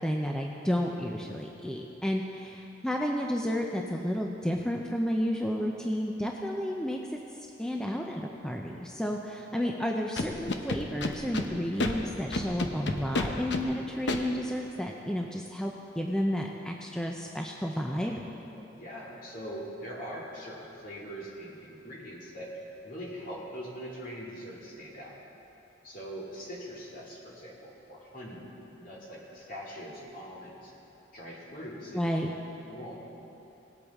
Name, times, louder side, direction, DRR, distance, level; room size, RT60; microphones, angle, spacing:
voice 1, 0.0-7.0 7.6-18.2 31.9-32.3, equal, 5° left, 0 dB, 0.5 m, -31 dB
Scratching (performance technique), 10.2-11.5 11.8-11.9 12.3-13.6 14.1-14.2, left 2 dB, 70° left, 0.8 m, -29 dB
voice 2, 18.5-25.1 25.8-28.5 28.7-30.7 31.1-32.1 32.3-33.0, equal, 50° left, -4 dB, 2.5 m, -42 dB
18.5 x 8.3 x 3.6 m, 2.9 s
head